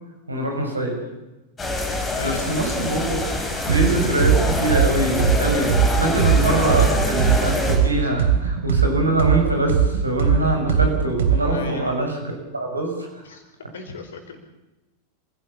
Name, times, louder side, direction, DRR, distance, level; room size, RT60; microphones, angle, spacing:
voice 1, 0.3-1.0 2.2-3.2 3.7-13.2, right 1 dB, 80° right, 3 dB, 6.7 m, -24 dB
sound 1, 1.6-7.8, left 2 dB, 15° left, 6.9 m, -25 dB
voice 2, 1.9-2.5 6.6-6.7 8.0-8.1 11.5-12.0 13.2-13.4 13.7-14.4, left 5 dB, 65° left, 7 dB, 4.9 m, -37 dB
sound 2, 3.7-3.9 4.2-7.9 8.2-11.6, right 8 dB, 60° right, 2.9 m, -19 dB
28.5 x 16.5 x 7.2 m, 1.1 s
figure-of-eight pair, 90°, 0 cm